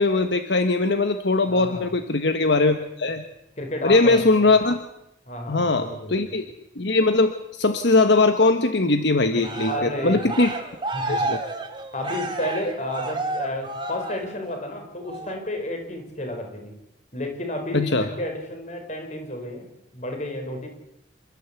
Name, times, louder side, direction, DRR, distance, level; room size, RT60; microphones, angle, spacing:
voice 1, 0.0-3.2 3.8-4.8 5.5-6.5 6.8-10.5 11.1-11.4 17.7-18.0, left 3 dB, 65° left, 8 dB, 1.3 m, -20 dB
voice 2, 1.4-1.9 3.6-4.2 5.3-6.3 9.7-10.4 10.9-11.3 11.9-16.7 17.1-19.7 19.9-20.7, left 1 dB, 40° left, 3 dB, 4.7 m, -31 dB
Cheering, 9.4-14.6 15.1-15.4, right 2 dB, 25° right, 2.3 m, -31 dB
27.5 x 13.5 x 8.2 m, 0.87 s
head